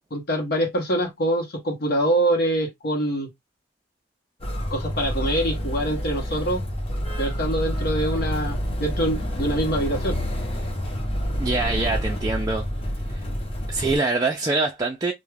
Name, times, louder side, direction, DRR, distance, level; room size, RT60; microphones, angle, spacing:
voice 1, 0.1-3.3 4.7-6.6 7.2-10.2, right 1 dB, 60° left, 0.8 m, -25 dB
Motor vehicle (road), 4.4-14.0, equal, 35° left, 0.7 m, -28 dB
voice 2, 11.4-12.6 13.1-13.2 13.7-15.1, right 3 dB, 20° right, 0.4 m, -24 dB
2.3 x 2.1 x 3.2 m
head